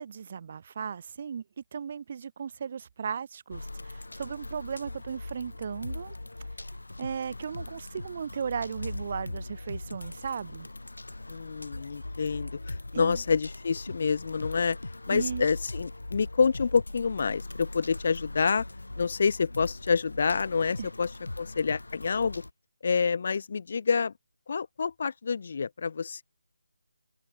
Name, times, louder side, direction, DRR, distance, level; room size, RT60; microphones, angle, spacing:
voice 1, 0.0-6.1 7.0-10.7 12.9-13.2 15.1-15.5 20.8-20.9, right 7 dB, 40° right, 3.8 m, -36 dB
sound 1, 3.5-22.5, left 2 dB, 75° left, 5.6 m, -40 dB
voice 2, 11.3-14.8 15.1-18.6 19.0-22.4 22.8-24.1 24.5-26.2, left 5 dB, 45° left, 1.5 m, -28 dB
figure-of-eight pair, 155°, 0 cm